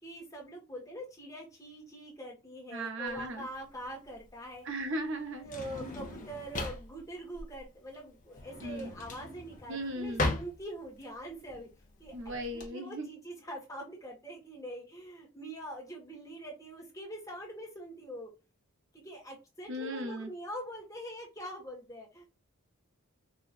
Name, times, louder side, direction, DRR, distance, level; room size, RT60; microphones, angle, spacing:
voice 1, 0.0-4.6 5.4-11.7 12.0-18.3 18.9-22.3, right 1 dB, 15° left, -2 dB, 1.5 m, -44 dB
voice 2, 2.7-3.5 4.6-5.5 8.6-8.9 9.7-10.3 12.1-13.1 19.7-20.3, right 1 dB, 55° right, 5 dB, 0.8 m, -37 dB
Drawer open or close, 3.1-12.7, left 2 dB, 35° left, 0.9 m, -39 dB
5.0 x 3.0 x 2.4 m, 0.28 s
head